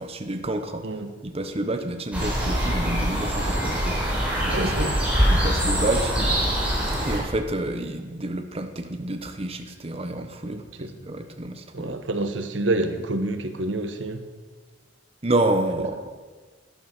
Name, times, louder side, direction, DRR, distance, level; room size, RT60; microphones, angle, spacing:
voice 1, 0.0-0.8 1.2-4.0 4.5-4.8 5.3-6.1 7.0-12.0 15.2-16.0, right 2 dB, 35° right, 1.0 m, -29 dB
voice 2, 0.8-1.1 4.5-5.0 10.4-10.9 11.7-14.2, right 2 dB, 85° right, 1.2 m, -28 dB
sound 1, 2.1-7.2, equal, 10° right, 4.4 m, -23 dB
12.0 x 11.0 x 6.1 m
head